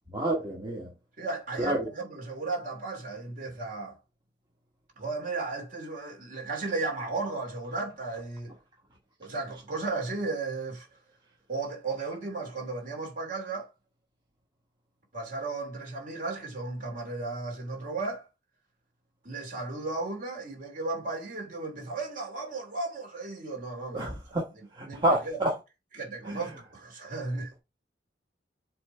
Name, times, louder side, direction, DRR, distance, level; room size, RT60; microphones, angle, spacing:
voice 1, 0.1-0.9 1.6-1.8 23.9-24.1 24.8-25.5 26.3-26.4, right 1 dB, 25° right, 1.3 m, -27 dB
voice 2, 1.2-4.0 5.0-8.5 9.2-11.0 11.5-13.7 15.1-18.3 19.2-24.1 24.5-25.4 25.9-27.6, right 3 dB, 45° right, 2.8 m, -35 dB
7.4 x 3.2 x 4.5 m
head